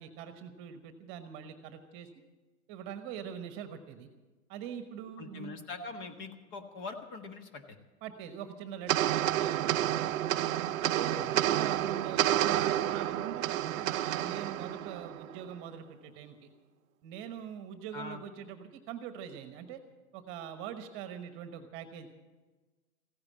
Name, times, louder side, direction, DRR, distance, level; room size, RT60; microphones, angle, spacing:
voice 1, 0.0-2.1 2.7-4.1 4.5-5.6 8.0-9.9 10.3-16.5 17.0-19.8 20.1-22.1, right 8 dB, 30° right, 9 dB, 1.2 m, -43 dB
voice 2, 5.2-7.8 11.1-11.4 17.9-18.2, left 4 dB, 35° left, 7 dB, 1.6 m, -43 dB
sound 1, 8.9-15.5, right 12 dB, 65° right, 0.6 m, -30 dB
15.5 x 9.7 x 8.5 m, 1.2 s
hypercardioid pair, 135°, 44 cm